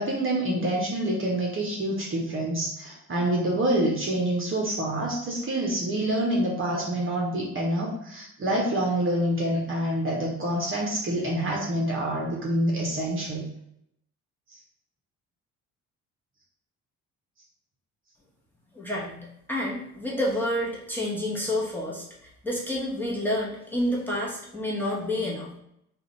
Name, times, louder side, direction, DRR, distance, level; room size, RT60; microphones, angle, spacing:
voice 1, 0.0-13.5, right 1 dB, 30° right, -3 dB, 1.0 m, -27 dB
voice 2, 18.7-19.2 19.5-22.0 22.4-25.5, left 1 dB, 5° left, -5 dB, 1.2 m, -29 dB
3.8 x 2.5 x 3.1 m, 0.77 s
figure-of-eight pair, 50°, 40 cm